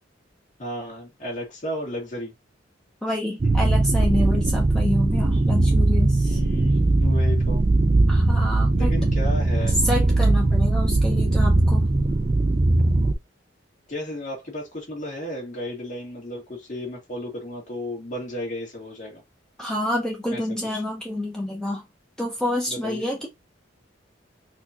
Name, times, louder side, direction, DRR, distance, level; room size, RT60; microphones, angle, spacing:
voice 1, 0.6-2.3 3.4-3.6 6.2-7.7 8.7-9.8 13.9-19.2 20.3-20.4 20.7-20.8 22.7-23.0, left 1 dB, 45° left, 1.8 m, -33 dB
voice 2, 3.0-6.4 8.1-9.0 9.8-11.9 19.6-21.8 22.2-23.3, left 1 dB, 5° left, 0.7 m, -28 dB
sound 1, 3.4-13.1, right 2 dB, 30° right, 0.4 m, -20 dB
4.3 x 2.4 x 2.8 m
head